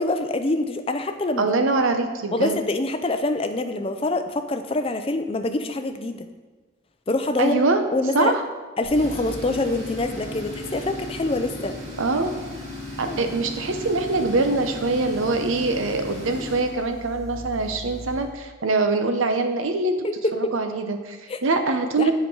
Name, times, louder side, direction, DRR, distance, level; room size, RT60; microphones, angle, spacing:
voice 1, 0.0-1.5 2.3-6.3 7.1-7.6 7.9-8.3 8.8-11.7 13.1-13.3 20.0-20.5 21.3-21.4 22.0-22.1, left 2 dB, 30° left, 7 dB, 0.5 m, -25 dB
voice 2, 1.4-2.6 7.4-7.8 8.1-8.4 12.0-12.3 13.0-20.1 20.4-22.1, right 3 dB, 85° right, 7 dB, 0.8 m, -23 dB
Tools, 8.8-18.3, left 1 dB, 35° right, 2.2 m, -36 dB
7.8 x 5.1 x 4.5 m, 1.3 s
head